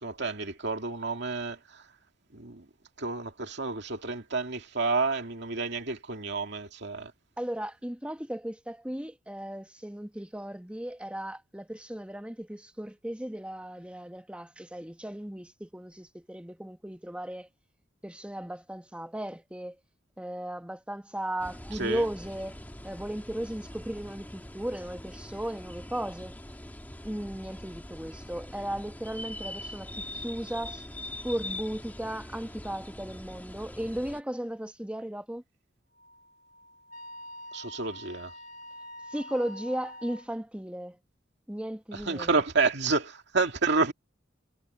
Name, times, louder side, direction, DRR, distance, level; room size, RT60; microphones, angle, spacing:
voice 1, 0.0-1.8 2.3-2.7 3.0-7.1 21.8-22.0 37.5-38.3 41.9-43.9, right 4 dB, 65° right, 2.4 m, -29 dB
voice 2, 7.4-17.5 18.0-19.8 20.2-22.6 22.8-26.4 27.0-30.8 31.2-35.4 39.1-41.0 41.5-42.4, right 1 dB, 5° right, 1.3 m, -36 dB
sound 1, 21.4-34.2, left 1 dB, 10° left, 2.0 m, -43 dB
Wind instrument woodwind instrument, 35.9-40.3, left 1 dB, 45° left, 3.7 m, -46 dB
head